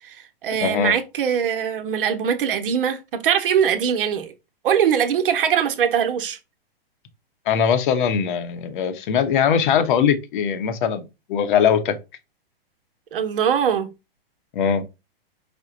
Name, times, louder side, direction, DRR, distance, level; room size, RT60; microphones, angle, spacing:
voice 1, 0.0-4.3 4.6-6.4 13.1-13.9, right 8 dB, 60° right, 0.9 m, -22 dB
voice 2, 0.6-0.9 7.5-12.0 14.5-14.8, left 7 dB, 55° left, 0.9 m, -21 dB
5.1 x 2.2 x 3.8 m
hypercardioid pair, 125°, 30 cm